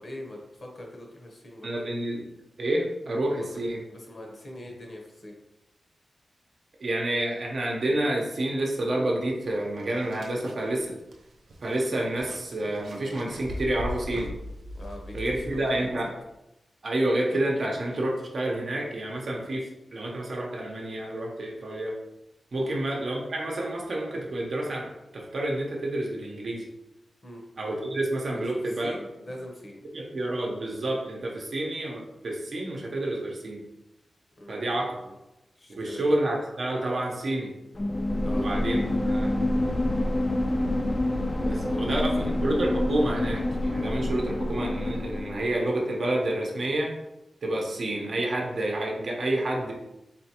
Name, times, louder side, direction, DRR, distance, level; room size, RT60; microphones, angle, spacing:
voice 1, 0.0-1.7 3.7-5.4 14.7-15.9 22.6-22.8 27.2-27.4 28.3-29.8 34.4-35.1 35.5-36.1 38.2-38.5 41.4-42.5, left 1 dB, 40° left, 0 dB, 0.9 m, -42 dB
voice 2, 1.6-2.3 2.6-3.8 6.8-10.9 11.6-14.4 15.1-16.1 16.8-21.9 22.5-26.7 27.6-28.9 29.9-33.6 34.5-35.0 35.7-37.5 38.2-38.8 39.0-39.3 41.4-46.9 47.4-49.7, right 1 dB, 55° right, -1 dB, 0.8 m, -29 dB
sound 1, 9.8-16.1, left 1 dB, 80° right, 0.5 m, -40 dB
sound 2, 37.7-45.6, left 1 dB, 20° left, 0.3 m, -27 dB
4.2 x 3.2 x 2.9 m, 0.92 s
wide cardioid pair, 130°, 0 cm